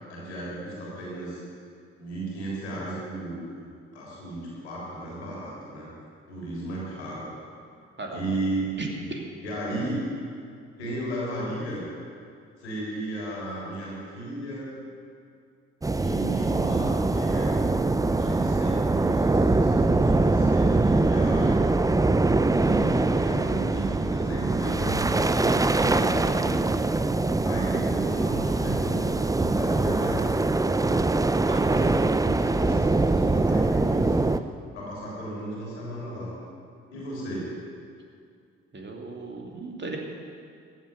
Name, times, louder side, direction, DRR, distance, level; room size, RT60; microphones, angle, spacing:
voice 1, 0.1-1.4 2.0-3.7 3.9-5.9 6.3-7.2 8.1-9.0 9.4-10.0 10.8-11.8 12.6-14.7 15.9-17.6 18.1-21.8 22.4-26.5 27.4-30.9 31.5-34.4 34.7-36.3 36.9-37.5, right 1 dB, 90° left, -5 dB, 3.6 m, -34 dB
voice 2, 8.8-9.2 31.5-31.8 38.7-40.0, right 2 dB, 35° right, 0 dB, 2.9 m, -36 dB
sound 1, 15.8-34.4, right 2 dB, 10° right, 0.6 m, -23 dB
14.5 x 7.7 x 9.6 m, 2.3 s
hypercardioid pair, 40°, 32 cm